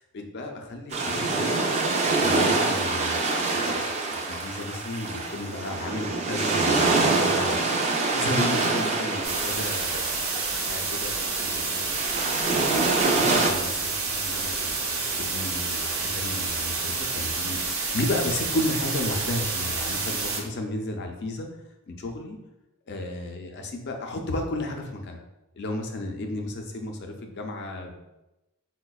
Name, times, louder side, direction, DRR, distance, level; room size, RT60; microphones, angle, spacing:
voice 1, 0.1-1.7 2.2-7.6 8.1-11.9 12.6-21.5 21.9-22.4 22.9-25.2 25.5-27.9, left 2 dB, 50° left, 3 dB, 0.4 m, -33 dB
sound 1, 0.9-13.5, right 3 dB, 30° right, 0.3 m, -26 dB
sound 2, 9.2-20.4, right 4 dB, 65° right, 0.6 m, -29 dB
4.7 x 2.1 x 2.3 m, 0.98 s
head